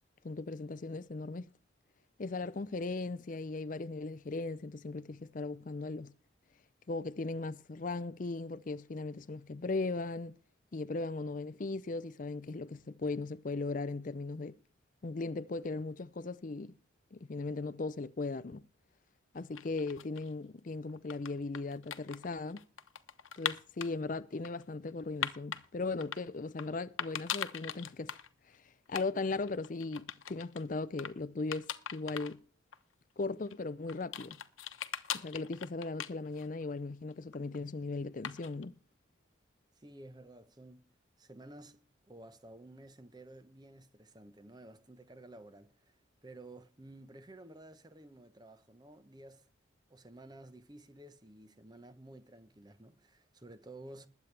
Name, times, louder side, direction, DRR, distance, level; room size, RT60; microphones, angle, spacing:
voice 1, 0.2-1.5 2.2-6.1 6.9-10.3 10.7-14.5 15.0-16.7 17.1-18.6 19.3-22.6 23.4-28.2 28.5-32.4 33.2-34.4 35.1-38.7, left 3 dB, 40° left, 0.5 m, -38 dB
sound 1, 19.3-20.3 20.9-23.9 24.4-25.6 26.0-26.7 27.0-28.3 28.5-28.6 28.9-29.1 29.3-30.6 31.0-31.1 31.5-32.3 32.7-32.8 33.5-36.6 36.9-37.6 38.2-38.6, left 9 dB, 85° left, 1.1 m, -40 dB
voice 2, 39.8-49.5 49.9-54.1, right 1 dB, 20° right, 0.9 m, -53 dB
21.0 x 8.4 x 3.3 m
head